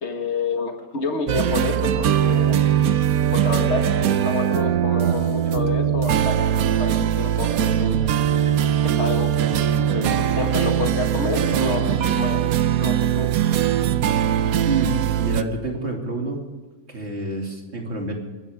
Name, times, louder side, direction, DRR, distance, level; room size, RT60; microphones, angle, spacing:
voice 1, 0.0-2.6 3.3-8.1 8.8-12.4 12.8-13.3, left 4 dB, 50° left, 4 dB, 2.1 m, -29 dB
sound 1, 1.3-15.4, right 10 dB, 85° right, 1.2 m, -21 dB
voice 2, 14.6-16.4 16.9-18.1, right 3 dB, 50° right, 1 dB, 3.0 m, -27 dB
23.0 x 14.0 x 3.6 m, 1.3 s
omnidirectional pair, 1.5 m